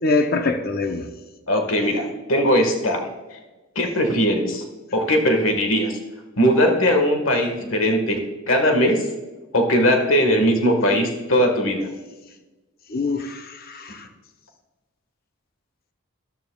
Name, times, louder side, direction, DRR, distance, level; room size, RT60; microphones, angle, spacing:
voice 1, 0.0-1.1 12.9-14.1, left 3 dB, 45° left, 0.6 m, -24 dB
voice 2, 1.5-3.0 3.3-3.4 3.7-4.6 4.9-6.0 6.4-8.2 8.5-9.0 9.5-11.9, equal, 70° left, 1.5 m, -19 dB
13.0 x 12.0 x 2.3 m
head